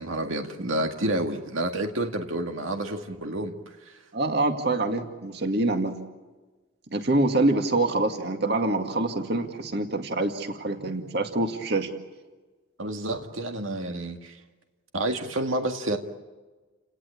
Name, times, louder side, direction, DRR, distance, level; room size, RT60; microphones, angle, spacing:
voice 1, 0.0-3.5 3.9-4.0 12.8-14.4 14.9-16.0, right 1 dB, 80° right, 1.9 m, -29 dB
voice 2, 4.1-6.0 6.9-11.9, right 2 dB, 55° right, 2.1 m, -25 dB
30.0 x 18.0 x 8.5 m
head